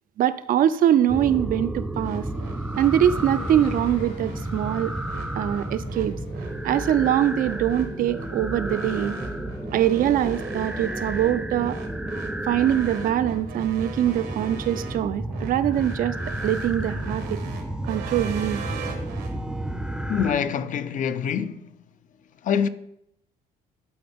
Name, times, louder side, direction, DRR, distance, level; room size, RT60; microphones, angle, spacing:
voice 1, 0.2-2.3 2.8-4.9 5.4-6.2 6.6-9.2 9.7-11.8 12.4-16.2 16.4-17.4 17.9-18.6, right 11 dB, 55° right, 0.4 m, -23 dB
sound 1, 1.1-20.3, right 1 dB, 5° right, 0.5 m, -32 dB
sound 2, 2.0-19.5, left 3 dB, 85° left, 3.0 m, -48 dB
sound 3, 2.0-19.3, right 5 dB, 75° right, 1.2 m, -41 dB
voice 2, 20.1-21.7 22.4-22.7, left 7 dB, 50° left, 0.5 m, -25 dB
11.5 x 4.3 x 3.5 m
cardioid pair, 110°, 17 cm